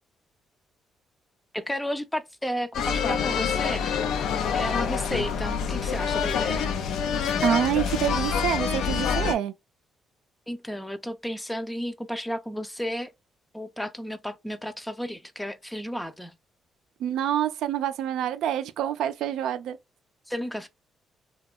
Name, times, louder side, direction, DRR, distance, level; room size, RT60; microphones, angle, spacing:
voice 1, 1.5-3.9 4.5-6.7 10.5-13.1 13.5-16.3 20.3-20.7, equal, 5° left, 0.4 m, -33 dB
sound 1, 2.7-9.3, left 6 dB, 80° left, 0.4 m, -26 dB
voice 2, 7.4-9.5 17.0-19.8, right 10 dB, 85° right, 0.3 m, -27 dB
2.8 x 2.2 x 2.3 m
cardioid pair, 90°, 0 cm